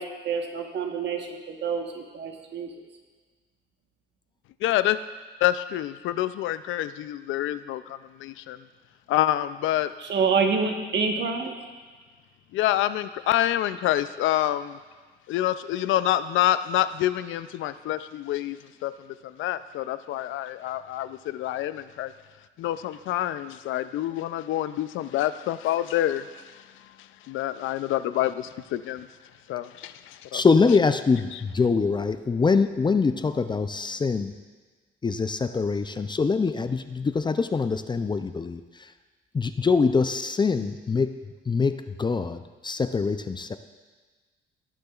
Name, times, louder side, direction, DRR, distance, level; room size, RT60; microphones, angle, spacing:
voice 1, 0.0-2.7 10.1-11.5, right 5 dB, 60° right, 3 dB, 1.3 m, -27 dB
voice 2, 4.6-5.0 5.4-8.7 9.1-9.9 12.5-14.8 15.3-22.1 22.6-29.1 29.5-30.4 31.3-31.4, left 13 dB, 80° left, 13 dB, 0.4 m, -27 dB
voice 3, 30.3-34.3 35.0-38.6 39.3-41.2 41.5-43.6, left 4 dB, 25° left, 10 dB, 0.4 m, -24 dB
18.0 x 6.6 x 2.4 m, 1.4 s
cardioid pair, 90°, 20 cm